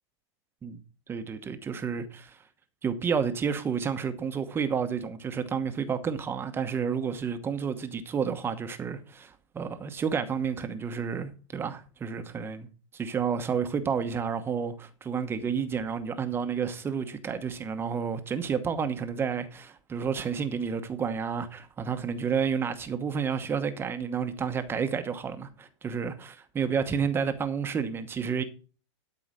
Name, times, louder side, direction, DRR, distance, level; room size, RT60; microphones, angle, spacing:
voice 1, 1.1-2.4 2.8-12.7 13.0-28.4, right 6 dB, 15° right, 1.0 m, -30 dB
12.5 x 4.9 x 6.4 m
supercardioid pair, 150°, 16 cm